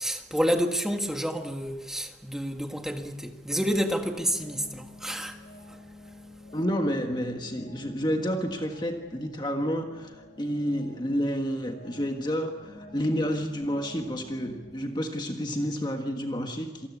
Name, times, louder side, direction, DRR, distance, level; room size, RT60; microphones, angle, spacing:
voice 1, 0.0-5.4 5.7-5.8, equal, 5° right, 1.7 m, -29 dB
sound 1, 3.7-14.8, left 2 dB, 40° left, 5.9 m, -49 dB
voice 2, 6.5-16.9, equal, 25° left, 1.5 m, -30 dB
27.0 x 19.5 x 8.4 m
head